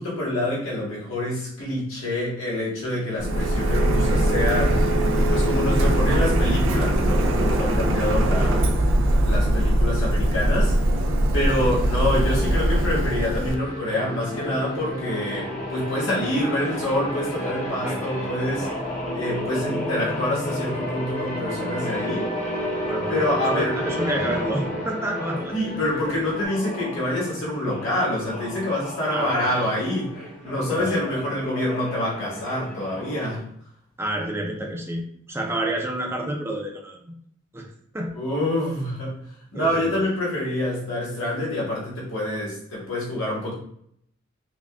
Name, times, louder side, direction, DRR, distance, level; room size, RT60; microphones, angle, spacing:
voice 1, 0.0-4.9 5.3-8.6 9.2-10.7 11.3-18.7 19.1-22.3 23.1-23.8 25.5-30.1 30.4-33.4 38.1-39.1 39.5-43.5, left 1 dB, 75° left, -6 dB, 1.4 m, -26 dB
Printer, 3.2-13.5, right 1 dB, 70° right, 0.4 m, -21 dB
sound 1, 11.4-26.5, left 1 dB, 55° left, 1.0 m, -38 dB
sound 2, 13.9-25.6 26.2-33.4, equal, 35° left, 0.7 m, -32 dB
voice 2, 22.8-23.2 23.5-25.5 25.9-26.3 29.1-29.5 30.7-31.0 34.0-37.1 37.5-38.1 39.5-40.1, right 1 dB, 15° right, 1 dB, 0.5 m, -29 dB
4.7 x 2.3 x 2.3 m, 0.68 s
head